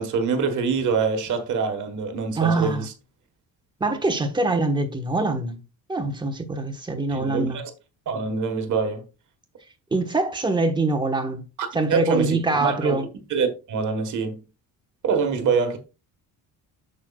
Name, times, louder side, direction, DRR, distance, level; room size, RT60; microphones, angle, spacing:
voice 1, 0.0-2.9 7.1-7.6 8.1-9.0 11.6-13.0 13.3-14.4 15.0-15.8, right 5 dB, 55° right, 1.5 m, -25 dB
voice 2, 2.4-2.9 3.8-5.6 5.9-7.6 9.9-11.4 11.7-13.1, right 3 dB, 10° right, 1.2 m, -24 dB
8.1 x 6.6 x 2.4 m
cardioid pair, 145°, 37 cm